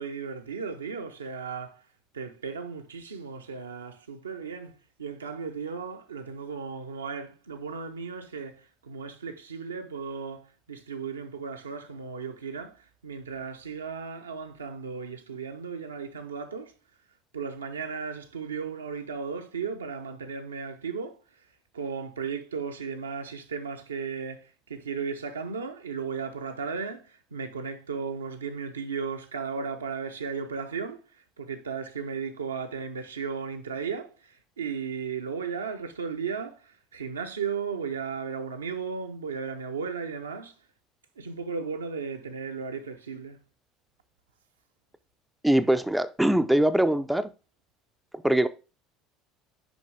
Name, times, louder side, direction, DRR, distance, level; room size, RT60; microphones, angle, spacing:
voice 1, 0.0-1.8 2.1-16.7 17.3-21.2 21.7-40.5 41.2-43.4, right 5 dB, 80° right, 0.7 m, -35 dB
voice 2, 45.4-47.3 48.2-48.5, right 1 dB, 5° right, 0.5 m, -22 dB
6.2 x 5.3 x 3.4 m
figure-of-eight pair, 65°, 0 cm